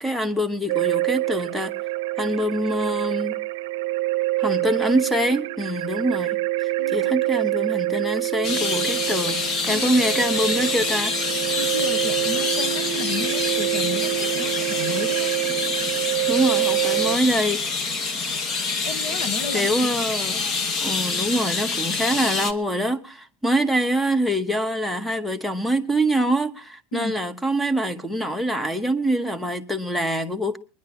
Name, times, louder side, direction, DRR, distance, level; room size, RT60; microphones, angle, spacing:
voice 1, 0.0-1.7 2.2-3.4 4.4-11.2 16.3-17.7 19.5-20.4 20.8-30.6, right 1 dB, ahead, 0.9 m, -25 dB
sound 1, 0.7-17.2, right 18 dB, 75° right, 0.6 m, -26 dB
voice 2, 6.8-7.5 9.7-9.9 11.5-15.3 18.8-19.9 26.9-27.2, left 4 dB, 60° left, 1.3 m, -33 dB
sound 2, 8.4-22.5, left 4 dB, 30° left, 1.0 m, -26 dB
22.5 x 10.5 x 4.2 m
supercardioid pair, 150°, 0 cm